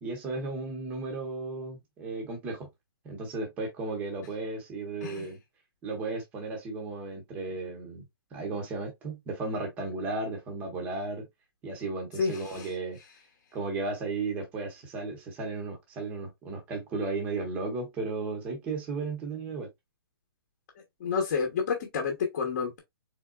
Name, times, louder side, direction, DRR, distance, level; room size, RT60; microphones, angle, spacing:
voice 1, 0.0-2.7 3.0-5.4 5.8-8.0 8.3-11.3 11.6-13.0 13.5-19.7, right 3 dB, 10° right, 0.9 m, -34 dB
voice 2, 12.2-12.7 21.0-22.8, left 5 dB, 35° left, 1.1 m, -29 dB
3.9 x 3.5 x 2.3 m
hypercardioid pair, 175°, 13 cm